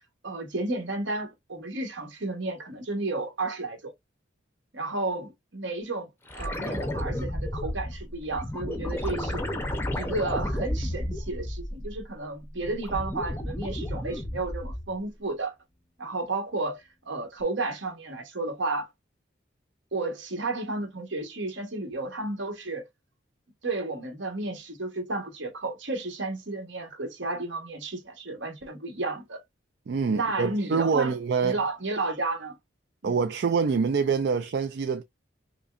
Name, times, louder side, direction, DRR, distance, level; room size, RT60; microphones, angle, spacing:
voice 1, 0.2-3.9 4.7-9.5 9.9-15.6 16.0-18.9 19.9-22.8 23.6-29.4 30.1-31.1 31.4-32.6 33.0-33.2, right 2 dB, 75° right, 1.2 m, -32 dB
sound 1, 6.3-12.1 12.5-15.0 17.4-17.5, left 1 dB, 10° left, 0.6 m, -32 dB
voice 2, 29.9-31.6 33.0-35.0, right 5 dB, 55° right, 0.3 m, -25 dB
5.1 x 2.1 x 2.4 m
head